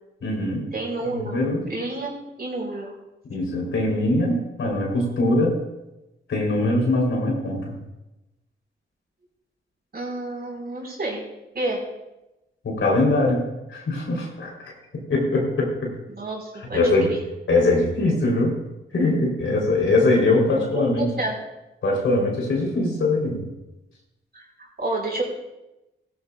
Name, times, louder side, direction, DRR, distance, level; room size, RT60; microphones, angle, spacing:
voice 1, 0.2-0.6 1.1-1.7 3.3-5.6 6.3-7.7 12.6-14.7 15.1-15.9 16.7-17.1 17.5-18.6 18.9-21.0 21.8-23.4, left 2 dB, 85° left, -1 dB, 3.8 m, -22 dB
voice 2, 0.7-1.4 1.7-2.1 2.4-2.9 9.9-11.3 11.5-11.9 16.1-17.2 20.5-21.4 24.3-24.4 24.8-25.2, right 2 dB, 50° right, -2 dB, 4.8 m, -29 dB
16.5 x 13.5 x 2.5 m, 0.97 s
cardioid pair, 65°, 20 cm